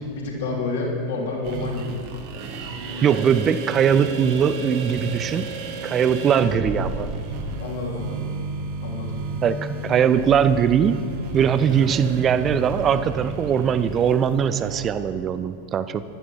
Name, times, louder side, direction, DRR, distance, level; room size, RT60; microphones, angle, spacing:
voice 1, 0.0-2.0 7.6-8.3 8.8-9.2, left 3 dB, 60° left, -3 dB, 3.6 m, -29 dB
sound 1, 1.4-15.0, right 3 dB, 45° right, 1.6 m, -32 dB
voice 2, 3.0-5.5 5.8-7.1 9.4-11.0 11.3-16.0, right 8 dB, 25° right, 13 dB, 0.5 m, -21 dB
14.5 x 12.5 x 4.7 m, 2.4 s
figure-of-eight pair, 90°, 0 cm